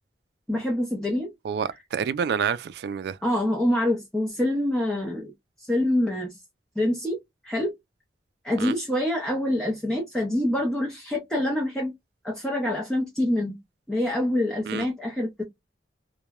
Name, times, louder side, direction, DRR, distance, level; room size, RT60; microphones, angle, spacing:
voice 1, 0.5-1.3 3.2-5.3 5.6-6.3 6.8-7.2 7.4-7.8 8.4-11.9 12.2-13.6 13.9-15.4, left 1 dB, 5° left, 0.6 m, -26 dB
voice 2, 1.4-3.2 8.6-8.7 14.7-14.9, right 7 dB, 65° right, 0.3 m, -28 dB
2.9 x 2.1 x 2.3 m
head